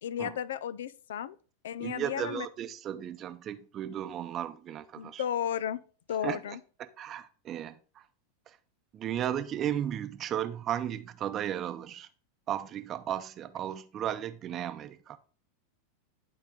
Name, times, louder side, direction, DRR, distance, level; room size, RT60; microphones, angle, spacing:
voice 1, 0.0-1.4 1.6-2.5 5.0-5.8 6.1-6.6, left 9 dB, 80° left, 0.4 m, -34 dB
voice 2, 1.8-5.2 6.2-6.4 6.8-8.0 8.5-8.6 8.9-12.1 12.5-15.2, right 10 dB, 35° right, 0.7 m, -35 dB
11.5 x 3.9 x 3.7 m
hypercardioid pair, 115°, 0 cm